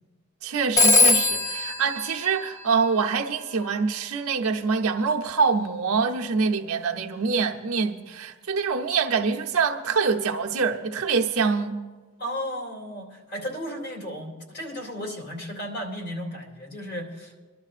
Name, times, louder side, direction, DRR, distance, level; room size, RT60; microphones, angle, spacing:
voice 1, 0.4-11.8, right 5 dB, 75° right, 0.8 m, -25 dB
Telephone, 0.8-3.3, left 2 dB, 15° left, 0.6 m, -22 dB
voice 2, 12.2-17.3, equal, 45° left, 2.5 m, -34 dB
25.0 x 12.0 x 2.5 m
head